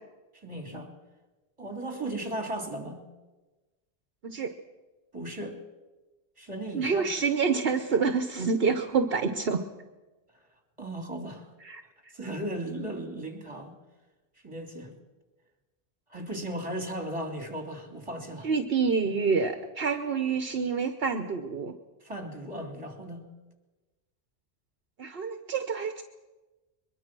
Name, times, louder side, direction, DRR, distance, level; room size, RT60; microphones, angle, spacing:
voice 1, 0.3-0.9 1.6-3.0 5.1-5.6 6.4-7.1 10.8-11.5 12.1-13.7 14.4-14.9 16.1-18.5 22.0-23.3, right 1 dB, 30° right, 4 dB, 3.4 m, -36 dB
voice 2, 6.7-9.6 11.6-11.8 18.4-21.7 25.0-26.0, right 5 dB, 65° right, 7 dB, 1.2 m, -27 dB
22.5 x 22.0 x 6.1 m, 1.2 s
omnidirectional pair, 1.1 m